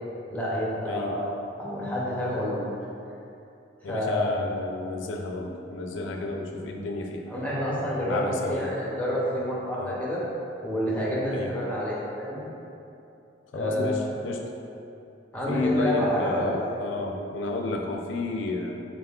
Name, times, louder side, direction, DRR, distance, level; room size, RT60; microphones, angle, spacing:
voice 1, 0.3-1.3 1.6-2.6 3.8-4.4 7.3-10.2 10.6-12.4 13.5-14.1 15.3-16.7, equal, 10° left, -6 dB, 0.6 m, -28 dB
voice 2, 3.8-7.2 8.0-8.7 9.8-10.0 11.3-11.5 13.5-14.5 15.5-18.9, left 2 dB, 85° left, 2 dB, 0.4 m, -31 dB
4.0 x 3.5 x 2.3 m, 2.8 s
head